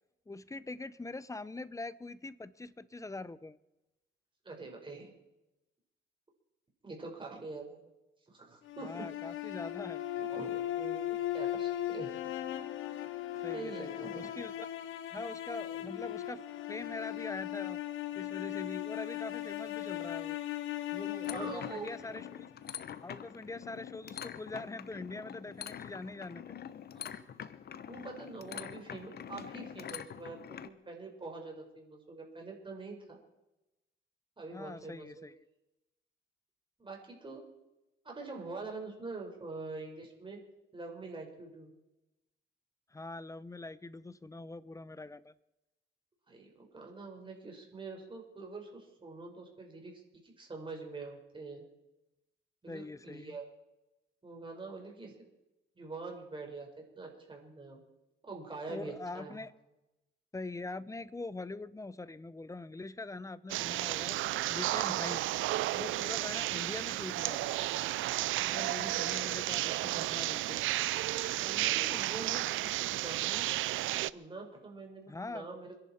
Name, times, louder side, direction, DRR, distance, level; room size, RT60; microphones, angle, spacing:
voice 1, 0.3-3.6 8.8-10.0 13.4-14.7 15.1-16.4 16.7-17.8 18.1-20.4 20.9-22.5 23.0-26.4 34.5-35.4 42.9-45.3 52.7-53.4 58.7-59.5 60.3-64.2 64.5-65.3 65.8-67.6 68.5-70.6 75.1-75.5, left 2 dB, 15° left, 0.7 m, -43 dB
voice 2, 4.4-5.1 6.8-7.9 8.3-8.9 10.2-12.3 13.5-14.3 21.2-22.0 26.9-27.4 27.9-33.2 34.4-35.3 36.8-37.4 38.0-40.4 40.7-41.7 46.3-49.9 50.2-51.6 52.6-53.4 54.2-55.1 55.8-56.7 57.0-57.8 58.2-59.5 71.4-73.5 74.1-75.7, right 3 dB, 25° right, 4.8 m, -45 dB
sound 1, 8.6-22.8, left 13 dB, 90° left, 1.3 m, -38 dB
sound 2, 21.2-30.7, left 9 dB, 55° left, 0.9 m, -45 dB
sound 3, 63.5-74.1, right 16 dB, 80° right, 0.5 m, -33 dB
27.5 x 11.0 x 4.4 m
cardioid pair, 90°, 20 cm